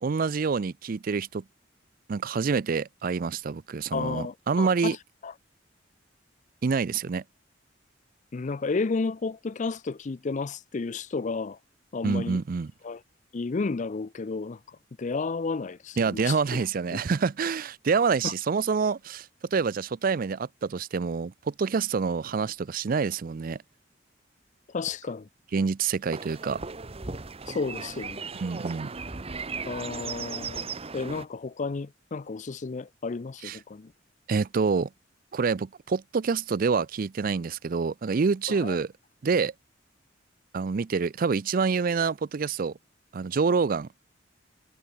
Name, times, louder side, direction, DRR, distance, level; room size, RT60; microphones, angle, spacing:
voice 1, 0.0-1.4 2.1-5.0 6.6-7.2 12.0-12.7 16.0-23.6 25.5-26.6 28.4-28.9 33.4-33.6 34.3-34.9 35.3-38.9 39.2-39.5 40.5-42.7 43.1-43.9, right 5 dB, 50° right, 0.4 m, -27 dB
voice 2, 3.9-5.0 5.2-5.3 8.3-11.6 11.9-12.4 12.8-13.0 13.3-16.4 16.9-17.0 18.2-18.3 24.7-25.3 27.5-28.3 29.7-33.9 38.5-38.8, left 4 dB, 40° left, 0.5 m, -32 dB
sound 1, 26.1-31.2, right 4 dB, 30° right, 1.0 m, -37 dB
head